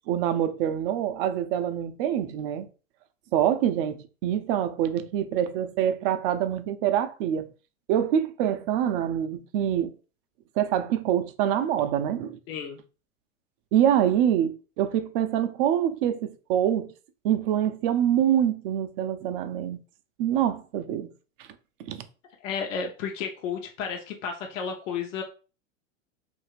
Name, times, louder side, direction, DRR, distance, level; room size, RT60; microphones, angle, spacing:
voice 1, 0.1-2.7 3.3-7.5 7.9-9.9 10.6-12.4 13.7-16.9 17.2-19.8 20.2-21.1 21.8-22.0, right 10 dB, 45° right, 0.4 m, -25 dB
voice 2, 12.5-12.8 22.4-25.2, left 6 dB, 70° left, 0.8 m, -32 dB
2.7 x 2.5 x 3.1 m
hypercardioid pair, 110°, 40 cm